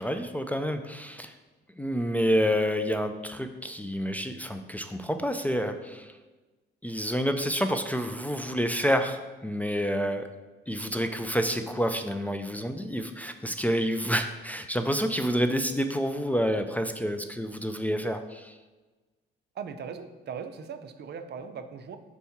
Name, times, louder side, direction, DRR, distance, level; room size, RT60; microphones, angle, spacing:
voice 1, 0.0-1.3 1.8-6.1 6.8-10.3 10.7-18.5, equal, 10° left, 6 dB, 0.4 m, -28 dB
voice 2, 19.5-22.0, right 6 dB, 55° right, 8 dB, 0.6 m, -39 dB
4.6 x 4.1 x 5.8 m, 1.2 s
cardioid pair, 90°, 20 cm